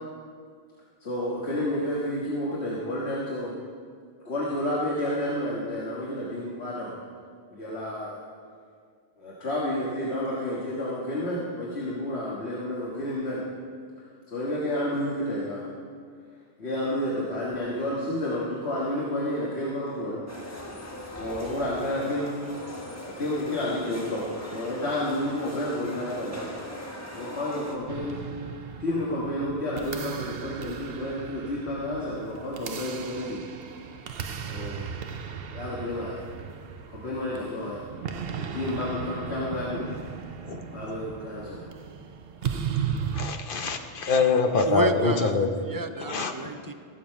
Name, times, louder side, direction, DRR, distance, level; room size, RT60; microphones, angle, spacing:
voice 1, 1.0-3.5 4.3-6.9 7.5-8.2 9.2-13.4 14.3-15.6 16.6-20.2 21.1-22.3 23.0-26.5 27.1-28.2 28.8-33.4 34.4-34.9 35.5-36.3 36.9-37.8 38.2-39.8 40.7-41.7, left 1 dB, 85° left, -6 dB, 1.8 m, -30 dB
sound 1, 20.3-27.8, left 1 dB, 15° left, 1.2 m, -40 dB
sound 2, 27.9-43.3, right 7 dB, 65° right, 0.9 m, -36 dB
voice 2, 43.1-45.5 46.1-46.3, left 4 dB, 55° left, 6 dB, 1.0 m, -24 dB
voice 3, 44.6-46.7, right 3 dB, 35° right, 7 dB, 0.3 m, -31 dB
16.0 x 7.0 x 5.2 m, 2.1 s
omnidirectional pair, 1.1 m